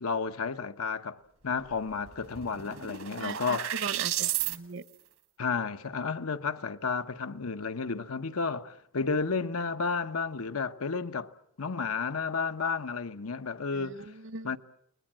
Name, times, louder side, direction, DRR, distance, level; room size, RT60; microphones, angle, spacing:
voice 1, 0.0-3.8 5.4-11.3 11.6-14.1 14.4-14.6, left 5 dB, 85° left, 0.9 m, -32 dB
sound 1, 1.7-1.8 2.1-4.6, right 12 dB, 75° right, 1.6 m, -33 dB
voice 2, 3.2-4.8 13.8-14.6, right 4 dB, 55° right, 0.9 m, -39 dB
29.5 x 21.0 x 7.5 m
head